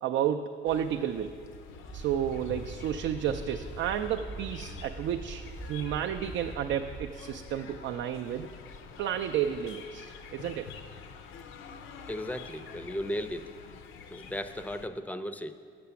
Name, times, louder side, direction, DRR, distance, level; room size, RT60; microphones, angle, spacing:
voice 1, 0.0-1.3 1.9-8.5 9.0-10.7, right 9 dB, 70° right, 5 dB, 0.4 m, -31 dB
sound 1, 0.6-14.9, left 5 dB, 80° left, 0.6 m, -47 dB
sound 2, 1.9-7.1, right 3 dB, 45° right, 0.8 m, -43 dB
voice 2, 12.1-13.5 14.1-15.5, equal, 10° left, 10 dB, 0.4 m, -35 dB
7.5 x 6.8 x 6.9 m, 2.2 s
cardioid pair, 90°, 20 cm